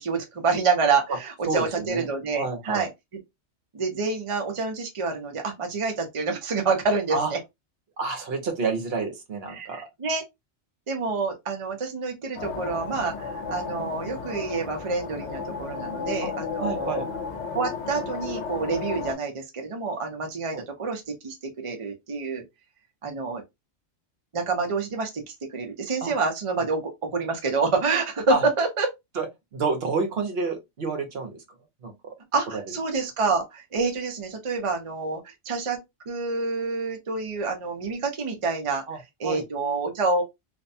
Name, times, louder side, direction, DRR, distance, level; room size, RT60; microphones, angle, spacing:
voice 1, 0.0-2.9 3.7-7.4 9.5-10.2 10.9-17.0 17.5-22.4 23.0-23.4 24.3-28.9 32.3-35.8 36.1-40.2, right 4 dB, 40° right, 0.5 m, -27 dB
voice 2, 1.5-2.1 2.3-2.9 7.1-7.3 8.0-9.9 16.2-16.3 16.6-17.1 20.5-20.6 26.0-26.1 28.3-28.4 29.2-29.3 29.5-31.4 31.8-31.9 32.5-32.8 38.9-39.0 39.2-39.4, right 4 dB, 60° right, 0.9 m, -29 dB
sound 1, 12.4-19.2, left 5 dB, 75° left, 0.9 m, -33 dB
2.5 x 2.1 x 2.6 m
omnidirectional pair, 1.2 m